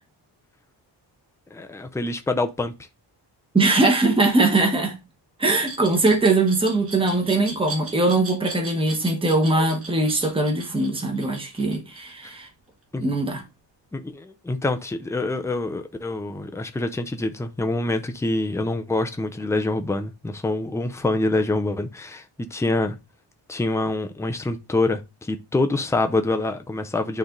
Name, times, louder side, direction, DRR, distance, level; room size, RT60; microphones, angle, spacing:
voice 1, 1.5-2.7 12.9-13.0 13.9-23.0 23.5-27.2, left 2 dB, 5° left, 0.5 m, -26 dB
voice 2, 3.5-5.0 5.4-12.5 13.0-13.4, right 2 dB, 10° right, 1.2 m, -21 dB
Glass, 5.6-12.5, right 3 dB, 30° right, 1.8 m, -38 dB
9.5 x 3.4 x 3.8 m
wide cardioid pair, 175°, 43 cm